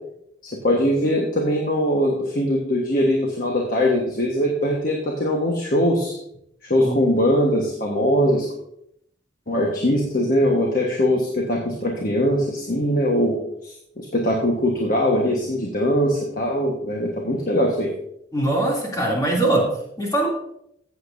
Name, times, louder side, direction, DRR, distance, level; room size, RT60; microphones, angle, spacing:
voice 1, 0.6-6.2 6.7-8.5 9.5-17.9, equal, 45° left, -1 dB, 1.3 m, -21 dB
voice 2, 18.3-20.3, right 1 dB, 20° left, -3 dB, 2.7 m, -22 dB
14.5 x 7.8 x 2.7 m, 0.73 s
head